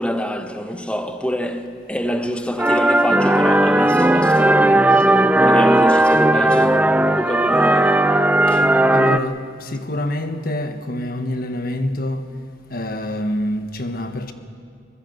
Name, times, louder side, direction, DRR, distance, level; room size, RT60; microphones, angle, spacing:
voice 1, 0.0-5.1 5.4-6.8 7.1-8.0 8.5-8.7, equal, 5° left, 1.3 m, -25 dB
sound 1, 2.6-9.2, right 1 dB, 10° right, 0.5 m, -16 dB
voice 2, 8.9-12.3 12.7-14.3, left 1 dB, 55° left, 1.5 m, -26 dB
23.0 x 20.0 x 8.1 m
head